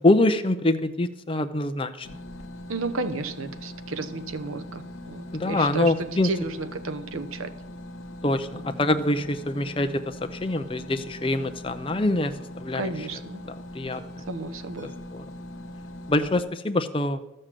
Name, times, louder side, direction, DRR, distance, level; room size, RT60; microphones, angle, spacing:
voice 1, 0.0-2.1 5.3-6.3 8.2-13.1 13.5-14.0 15.1-15.2 16.1-17.2, left 2 dB, 25° left, 8 dB, 0.6 m, -25 dB
sound 1, 2.0-16.4, left 1 dB, 80° left, 1.1 m, -41 dB
voice 2, 2.7-7.5 12.8-13.4 14.3-14.9, right 3 dB, 85° right, 10 dB, 0.9 m, -33 dB
Ringtone, 9.6-9.9 10.5-10.7 11.3-11.6 12.2-12.5 13.1-13.4 13.9-14.3 14.8-15.2 15.5-15.6, equal, 65° right, 4.7 m, -54 dB
13.0 x 6.6 x 7.5 m, 0.98 s
head